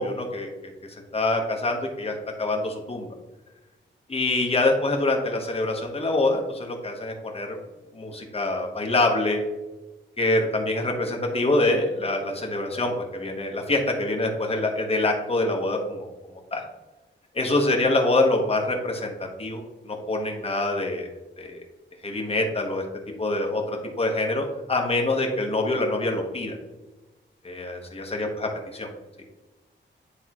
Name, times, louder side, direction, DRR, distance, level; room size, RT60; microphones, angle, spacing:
voice 1, 0.0-3.1 4.1-7.6 7.9-9.4 10.2-16.1 16.5-16.6 17.3-21.1 21.4-21.6 22.0-22.8 23.2-26.6 27.4-28.5 28.7-28.9, left 2 dB, 30° left, 1 dB, 1.0 m, -25 dB
9.7 x 3.5 x 2.9 m, 1.1 s
wide cardioid pair, 180°, 20 cm